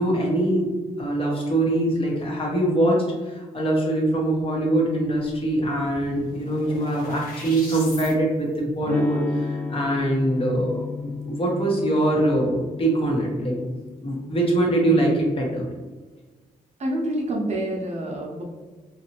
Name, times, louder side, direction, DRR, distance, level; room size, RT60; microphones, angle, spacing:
voice 1, 0.0-13.6 14.0-15.6, right 1 dB, 40° left, -2 dB, 1.0 m, -23 dB
sound 1, 5.6-8.1, left 2 dB, 85° left, 0.9 m, -40 dB
Electric guitar / Strum, 8.8-14.5, left 4 dB, 10° left, 0.4 m, -33 dB
voice 2, 16.8-18.4, right 1 dB, 50° right, -1 dB, 0.7 m, -27 dB
2.8 x 2.5 x 2.9 m, 1.3 s
cardioid pair, 90°, 15 cm